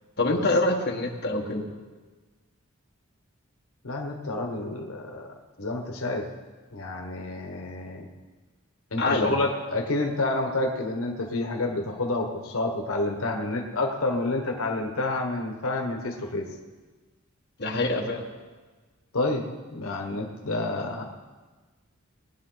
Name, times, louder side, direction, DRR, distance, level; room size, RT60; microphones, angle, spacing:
voice 1, 0.2-1.6 9.0-9.4 17.6-18.2, left 2 dB, 50° left, -1 dB, 1.5 m, -25 dB
voice 2, 3.8-5.3 5.6-6.3 6.7-8.1 8.9-16.5 19.1-21.1, left 2 dB, 85° left, 2 dB, 1.3 m, -29 dB
19.5 x 10.0 x 4.0 m, 1.3 s
head